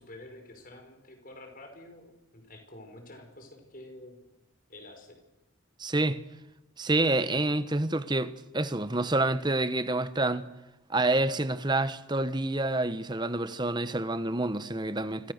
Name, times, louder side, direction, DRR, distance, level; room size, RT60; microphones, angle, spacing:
voice 1, 0.0-4.2 4.7-5.2, left 1 dB, 45° left, 5.5 m, -48 dB
voice 2, 5.8-6.2 6.8-10.5 10.9-15.3, right 2 dB, 20° right, 1.1 m, -28 dB
29.0 x 26.0 x 6.7 m
head